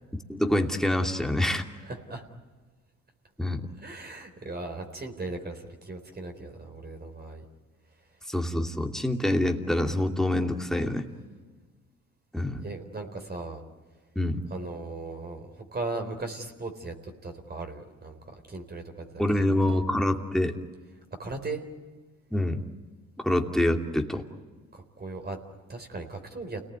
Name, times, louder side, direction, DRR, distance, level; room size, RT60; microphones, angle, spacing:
voice 1, 0.3-1.6 3.4-3.7 8.3-11.1 12.3-12.6 14.2-14.4 19.2-20.6 22.3-22.6 23.2-24.2, left 1 dB, ahead, 3 dB, 2.6 m, -26 dB
voice 2, 1.8-2.2 3.8-7.4 12.6-13.6 14.5-19.8 21.2-21.6 24.7-25.4 25.7-26.6, right 2 dB, 30° right, 5 dB, 4.0 m, -38 dB
29.0 x 19.0 x 9.5 m, 1.4 s
cardioid pair, 90°, 30 cm